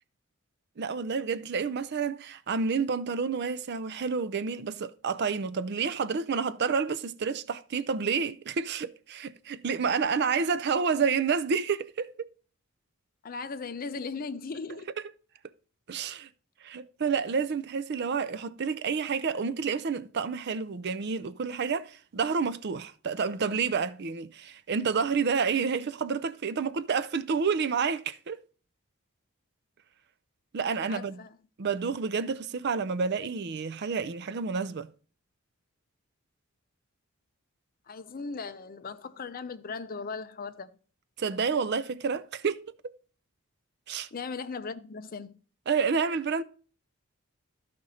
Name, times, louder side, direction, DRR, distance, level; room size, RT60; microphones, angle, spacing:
voice 1, 0.8-12.3 15.9-16.3 16.6-28.4 30.5-31.2 31.6-34.9 41.2-42.7 43.9-44.1 45.7-46.4, right 5 dB, 50° right, 0.5 m, -29 dB
voice 2, 13.2-14.9 30.9-31.4 37.9-40.7 44.1-45.3, left 4 dB, 40° left, 0.5 m, -38 dB
13.0 x 5.1 x 4.1 m
head